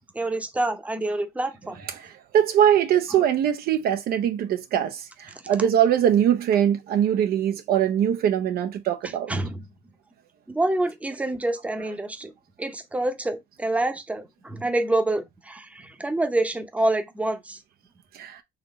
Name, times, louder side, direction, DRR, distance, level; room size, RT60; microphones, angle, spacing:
voice 1, 0.1-1.8 3.1-3.2 9.0-9.6 10.5-12.3 12.6-17.6, right 2 dB, 10° right, 0.7 m, -27 dB
voice 2, 2.0-9.3 18.1-18.4, right 9 dB, 65° right, 0.5 m, -22 dB
4.0 x 2.9 x 4.0 m
cardioid pair, 110°, 17 cm